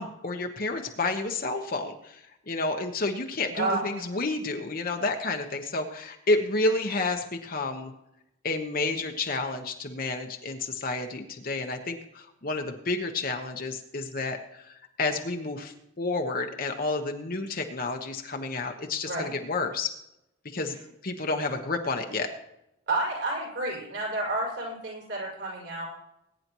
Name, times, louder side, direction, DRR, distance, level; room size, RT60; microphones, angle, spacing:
voice 1, 0.0-7.9 8.4-19.9 20.5-22.3, left 3 dB, 45° left, 4 dB, 1.1 m, -30 dB
voice 2, 22.9-25.9, right 2 dB, 65° right, -2 dB, 5.2 m, -30 dB
21.0 x 9.6 x 3.0 m, 0.85 s
head